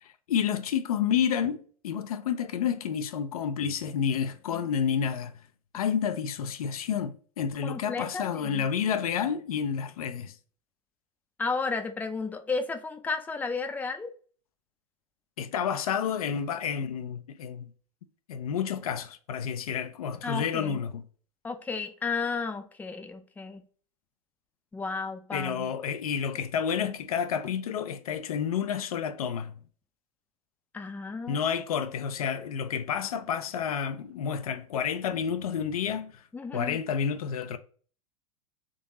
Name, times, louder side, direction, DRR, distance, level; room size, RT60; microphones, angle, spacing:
voice 1, 0.0-5.3 5.7-10.4 15.4-17.7 18.3-21.0 25.3-29.5 31.3-36.2 36.5-37.6, left 7 dB, 80° left, 0.5 m, -30 dB
voice 2, 7.6-8.7 11.4-14.1 20.2-20.8 21.4-23.6 24.7-25.7 30.7-31.5 36.3-36.8, left 4 dB, 10° left, 0.5 m, -33 dB
3.7 x 3.0 x 3.8 m
hypercardioid pair, 105°, 18 cm